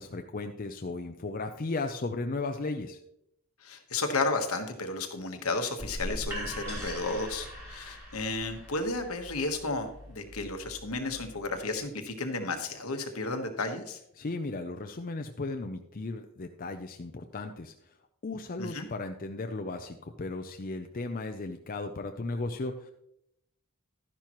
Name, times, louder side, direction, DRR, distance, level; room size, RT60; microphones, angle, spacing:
voice 1, 0.0-3.0 14.2-17.7 18.2-22.9, left 3 dB, 40° left, 5 dB, 0.5 m, -35 dB
voice 2, 3.6-14.0 18.6-18.9, left 3 dB, 80° left, 5 dB, 1.3 m, -33 dB
sound 1, 5.8-11.6, equal, 10° right, 2.6 m, -41 dB
12.0 x 10.5 x 3.0 m, 0.78 s
head